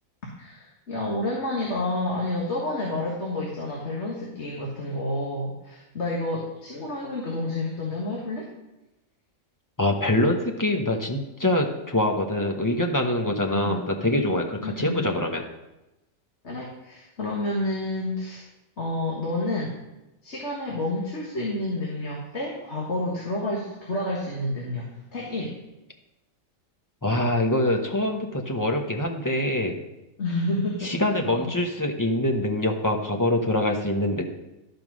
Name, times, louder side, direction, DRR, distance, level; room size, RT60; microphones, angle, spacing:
voice 1, 0.4-8.5 13.5-13.8 14.6-15.1 16.4-18.4 18.8-19.7 20.2-25.5 30.2-30.9 31.2-31.5, left 1 dB, 55° left, -3 dB, 1.9 m, -29 dB
voice 2, 9.8-15.4 27.0-29.8 30.8-34.2, left 1 dB, 15° left, 2 dB, 0.9 m, -24 dB
11.5 x 5.3 x 6.2 m, 0.97 s
omnidirectional pair, 1.4 m